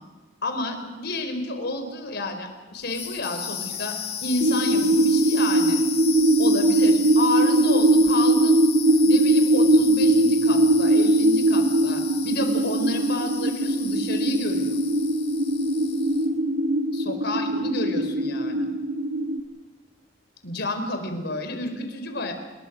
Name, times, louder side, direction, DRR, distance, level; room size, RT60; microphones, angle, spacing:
voice 1, 0.4-5.8 6.4-8.6 9.1-14.8 16.9-18.7 20.4-22.3, left 2 dB, 60° left, 7 dB, 4.5 m, -30 dB
sound 1, 2.8-16.3, left 8 dB, 35° left, 1.7 m, -35 dB
sound 2, 4.4-19.4, right 1 dB, 75° right, 2.0 m, -21 dB
28.5 x 21.5 x 6.3 m, 1.3 s
head